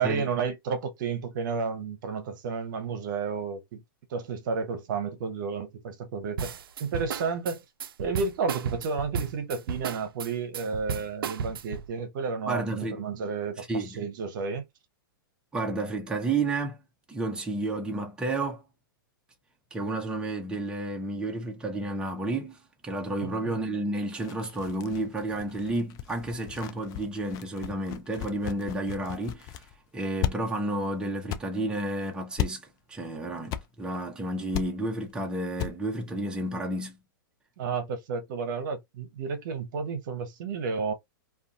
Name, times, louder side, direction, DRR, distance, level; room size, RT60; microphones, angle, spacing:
voice 1, 0.0-3.8 4.1-6.5 6.8-7.6 8.0-14.6 23.2-23.6 37.6-40.9, right 5 dB, 60° right, 0.8 m, -31 dB
sound 1, 6.4-11.9, right 7 dB, 80° right, 0.4 m, -33 dB
voice 2, 12.5-13.0 13.6-14.1 15.5-16.8 17.1-18.6 19.7-22.6 22.8-29.6 29.9-32.6 32.9-37.0, right 2 dB, 5° right, 0.7 m, -31 dB
sound 2, 24.2-29.8 30.2-30.3 30.7-30.8 31.3-31.4 32.4-32.5 33.4-33.6 33.9-34.1 34.5-34.7 35.1-35.2 35.6-35.7 36.0-36.1, left 12 dB, 30° left, 0.4 m, -35 dB
2.5 x 2.3 x 2.5 m
hypercardioid pair, 125°, 12 cm